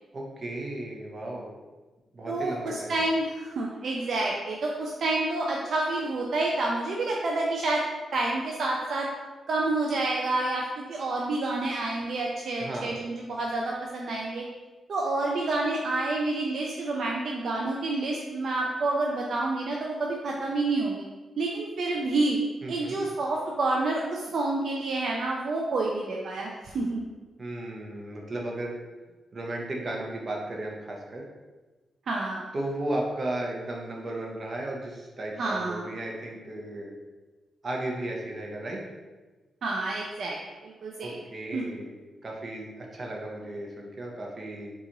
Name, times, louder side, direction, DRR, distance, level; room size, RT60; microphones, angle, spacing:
voice 1, 0.1-1.5 2.1-3.0 12.6-12.9 22.6-23.0 27.4-28.8 29.3-31.2 32.5-37.0 37.6-38.8 41.0-41.9 42.2-44.7, right 1 dB, 45° right, -1 dB, 0.7 m, -35 dB
voice 2, 2.3-7.8 8.1-9.1 9.5-14.4 14.9-21.0 21.4-22.4 22.7-27.1 32.1-32.5 35.4-35.8 39.6-40.4 40.6-41.2 41.5-41.7, right 2 dB, 65° right, -2 dB, 0.4 m, -28 dB
3.8 x 2.4 x 2.9 m, 1.2 s
cardioid pair, 85°, 0 cm